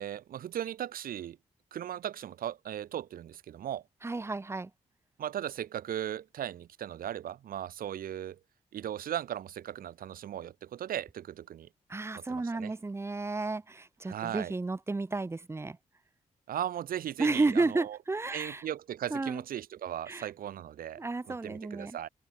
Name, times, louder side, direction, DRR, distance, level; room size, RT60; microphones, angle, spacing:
voice 1, 0.0-1.4 1.7-3.8 5.2-8.4 8.7-11.7 12.1-12.7 14.1-14.5 16.5-18.0 18.3-22.1, right 11 dB, 80° right, 0.9 m, -37 dB
voice 2, 4.0-4.7 11.9-15.8 17.2-18.6 19.1-19.4 20.1-20.3 21.0-22.0, right 3 dB, 20° right, 0.5 m, -32 dB
supercardioid pair, 50°, 15 cm